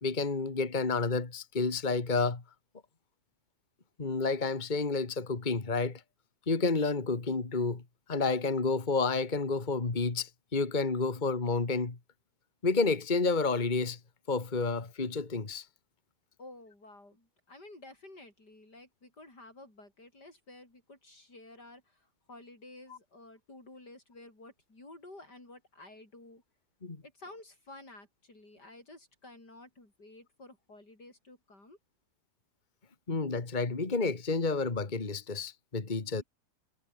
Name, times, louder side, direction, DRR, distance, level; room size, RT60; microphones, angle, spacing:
voice 1, 0.0-2.4 4.0-6.0 6.5-7.8 8.1-12.0 12.6-14.0 14.3-15.7 22.9-23.0 26.8-27.0 33.1-36.2, left 3 dB, 30° left, 2.0 m, -30 dB
voice 2, 16.4-21.8 22.3-26.4 27.0-31.8, left 2 dB, 80° left, 8.5 m, -52 dB
omnidirectional pair, 1.8 m